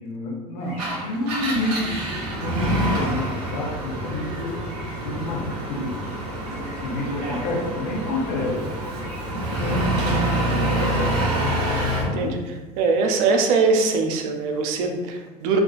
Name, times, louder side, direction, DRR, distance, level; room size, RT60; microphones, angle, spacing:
voice 1, 0.0-2.0 2.4-4.6 5.0-6.1 6.8-8.6 9.6-10.7 12.0-12.3, left 1 dB, 75° left, -1 dB, 0.9 m, -28 dB
Engine, 0.7-12.1, right 1 dB, 85° right, 1.1 m, -26 dB
voice 2, 12.0-15.6, right 4 dB, 70° right, 4 dB, 0.6 m, -22 dB
3.5 x 2.4 x 2.5 m, 1.3 s
hypercardioid pair, 95°, 20 cm